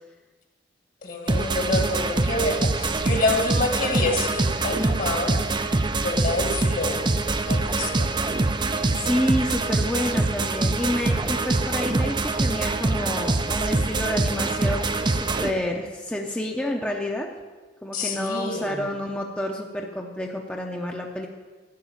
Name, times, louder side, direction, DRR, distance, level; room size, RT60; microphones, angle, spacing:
voice 1, 1.0-5.4 6.0-7.1 7.5-8.1 17.9-18.9, left 2 dB, 50° left, 2 dB, 1.8 m, -27 dB
sound 1, 1.3-15.5, right 2 dB, 25° right, 0.5 m, -24 dB
voice 2, 8.9-17.3 17.8-21.3, left 1 dB, 5° left, 0 dB, 0.7 m, -29 dB
12.5 x 6.2 x 8.6 m, 1.3 s
head